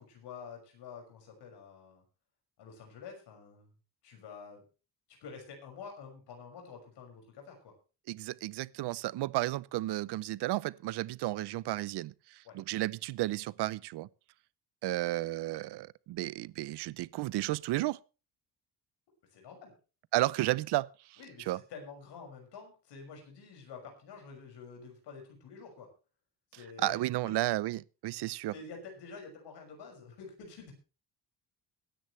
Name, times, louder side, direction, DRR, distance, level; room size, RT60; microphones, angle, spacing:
voice 1, 0.0-2.0 2.6-3.7 4.0-4.6 5.2-7.7 12.4-12.6 19.3-19.7 21.2-25.9 26.5-27.0 28.5-30.7, left 5 dB, 80° left, 6.2 m, -48 dB
voice 2, 8.1-14.1 14.8-18.0 20.1-21.2 21.5-21.6 26.8-28.5, right 17 dB, 75° right, 0.7 m, -33 dB
23.0 x 10.0 x 3.2 m
cardioid pair, 165°, 40 cm